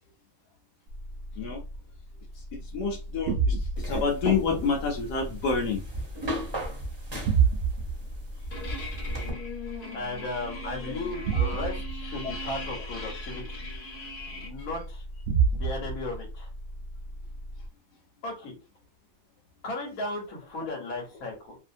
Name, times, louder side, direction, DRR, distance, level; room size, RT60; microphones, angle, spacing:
sound 1, 0.9-17.7, right 5 dB, 80° right, 0.5 m, -32 dB
voice 1, 2.5-5.8, left 5 dB, 85° left, 0 dB, 1.3 m, -28 dB
sound 2, 3.8-9.3, equal, 25° right, 0.7 m, -36 dB
sound 3, 8.5-14.5, left 2 dB, 45° left, 0.8 m, -40 dB
voice 2, 9.9-13.6 14.3-15.0 15.5-16.5 18.2-18.5 19.6-21.6, left 2 dB, 65° left, 0 dB, 1.4 m, -35 dB
2.8 x 2.6 x 2.5 m, 0.30 s
omnidirectional pair, 1.7 m